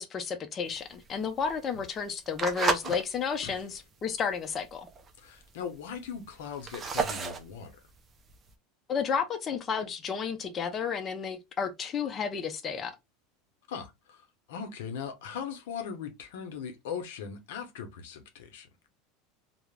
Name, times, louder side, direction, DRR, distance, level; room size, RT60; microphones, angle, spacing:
voice 1, 0.0-4.9 8.9-12.9, left 6 dB, 30° left, 0.4 m, -32 dB
sound 1, 0.7-3.0 3.5-3.8 4.3-4.4 4.6-4.7 4.9-5.4 5.9-8.5, right 5 dB, 25° right, 0.4 m, -32 dB
voice 2, 5.2-7.8 13.7-14.2 14.5-18.7, left 7 dB, 85° left, 0.6 m, -39 dB
2.3 x 2.0 x 3.1 m
supercardioid pair, 125°, 0 cm